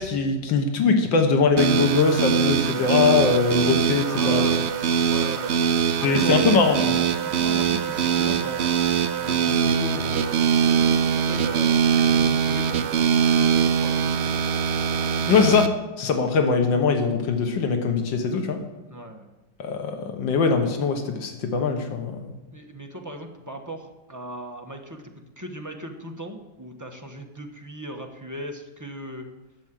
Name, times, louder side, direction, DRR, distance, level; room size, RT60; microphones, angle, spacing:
voice 1, 0.0-4.6 6.0-7.0 15.3-15.7 16.0-18.6 19.6-22.4, left 4 dB, 85° left, 5 dB, 1.9 m, -22 dB
sound 1, 1.6-15.7, right 7 dB, 70° right, 0.6 m, -22 dB
voice 2, 4.0-4.7 5.1-5.5 6.0-6.4 7.2-8.7 9.1-12.9 13.3-14.3 18.9-19.3 22.5-25.0 25.4-29.3, right 1 dB, 15° right, 2 dB, 0.9 m, -37 dB
10.5 x 7.3 x 7.5 m, 1.1 s
omnidirectional pair, 2.0 m